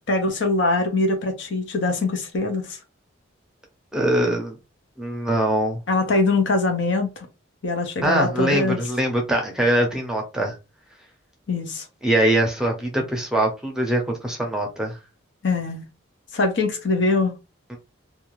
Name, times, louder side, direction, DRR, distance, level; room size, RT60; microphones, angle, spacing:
voice 1, 0.1-2.8 5.9-7.3 7.6-8.8 11.5-11.9 15.4-15.8 16.3-17.4, left 3 dB, 60° left, 0.7 m, -22 dB
voice 2, 3.9-4.6 5.0-5.8 8.0-10.5 12.0-15.0 17.7-17.8, right 1 dB, 5° right, 0.6 m, -22 dB
2.7 x 2.3 x 3.0 m
head